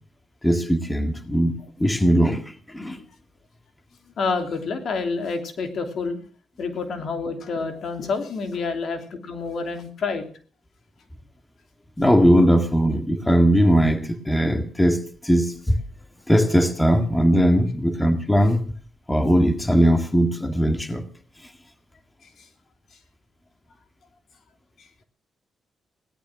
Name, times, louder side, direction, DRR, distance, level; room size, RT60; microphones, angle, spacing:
voice 1, 0.4-3.0 12.0-15.8 16.3-18.7 19.1-21.1, equal, 10° left, 1.9 m, -19 dB
voice 2, 4.2-6.2 6.6-10.2 22.4-22.5 24.8-24.9, left 4 dB, 65° left, 3.0 m, -28 dB
17.0 x 12.0 x 6.2 m
cardioid pair, 80°, 0 cm